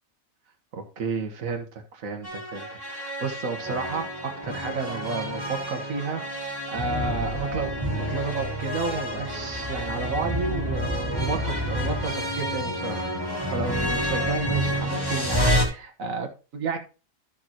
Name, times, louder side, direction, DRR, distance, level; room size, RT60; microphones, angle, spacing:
voice 1, 0.7-16.8, right 4 dB, 80° right, 1.8 m, -32 dB
sound 1, 2.2-15.7, equal, 15° left, 2.4 m, -29 dB
13.0 x 6.7 x 3.0 m
omnidirectional pair, 1.4 m